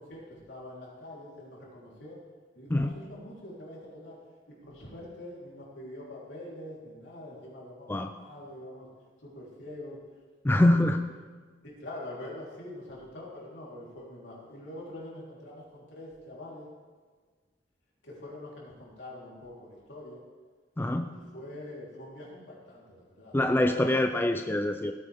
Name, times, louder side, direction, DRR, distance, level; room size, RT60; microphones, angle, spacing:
voice 1, 0.0-2.2 2.5-4.2 4.5-8.9 9.2-10.0 10.6-10.9 11.6-16.7 18.0-20.2 21.1-24.0, left 1 dB, 70° left, -5 dB, 3.8 m, -44 dB
voice 2, 10.4-11.0 20.8-21.1 23.3-24.9, left 1 dB, 10° left, 6 dB, 0.4 m, -24 dB
16.5 x 9.5 x 3.6 m, 1.5 s
head